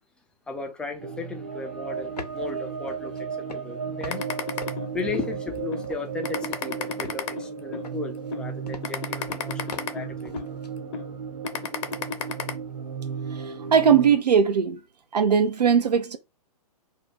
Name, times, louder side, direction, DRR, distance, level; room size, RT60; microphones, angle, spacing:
voice 1, 0.5-4.3 4.9-10.5, left 4 dB, 5° left, 0.3 m, -36 dB
sound 1, 1.0-14.2, right 6 dB, 60° right, 1.1 m, -35 dB
sound 2, 1.9-2.5 2.9-3.2 3.5-4.2 4.5-5.6 5.8-6.1 6.4-7.5 7.8-10.7, left 4 dB, 85° left, 0.7 m, -41 dB
sound 3, 4.1-5.3 5.7-5.9 6.2-7.9 8.3-8.5 8.8-10.5 10.9-11.1 11.4-12.5, left 6 dB, 45° left, 0.6 m, -31 dB
voice 2, 13.3-14.8 15.1-16.2, right 7 dB, 80° right, 0.5 m, -20 dB
2.5 x 2.1 x 3.2 m
figure-of-eight pair, 115°, 20 cm